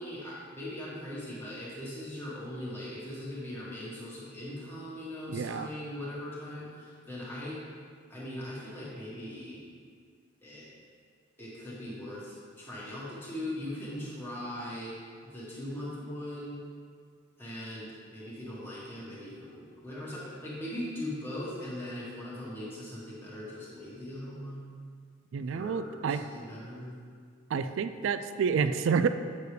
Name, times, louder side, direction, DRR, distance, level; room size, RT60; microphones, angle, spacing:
voice 1, 0.0-7.6 8.1-9.6 10.4-10.7 11.4-15.0 15.2-16.6 17.4-24.7 25.5-27.0, left 1 dB, 10° left, -7 dB, 1.6 m, -40 dB
voice 2, 5.3-5.7 25.3-26.2 27.5-29.1, right 6 dB, 70° right, 11 dB, 0.3 m, -29 dB
8.1 x 6.7 x 3.3 m, 2.1 s
head